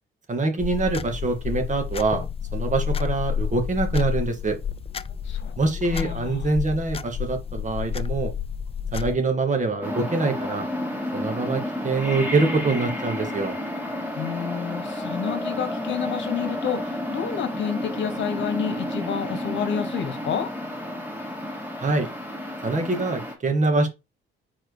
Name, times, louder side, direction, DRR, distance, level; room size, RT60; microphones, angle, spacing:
voice 1, 0.3-2.2 2.5-4.6 5.6-8.3 8.9-10.7 11.1-13.6 21.8-22.1 22.6-23.9, right 3 dB, 40° right, 2.0 m, -24 dB
sound 1, 0.6-9.2, left 7 dB, 30° left, 0.5 m, -30 dB
voice 2, 5.9-6.5 14.2-20.5, left 8 dB, 70° left, 1.3 m, -29 dB
sound 2, 9.8-23.4, left 1 dB, 10° right, 2.7 m, -31 dB
4.8 x 4.3 x 4.8 m
cardioid pair, 90°, 20 cm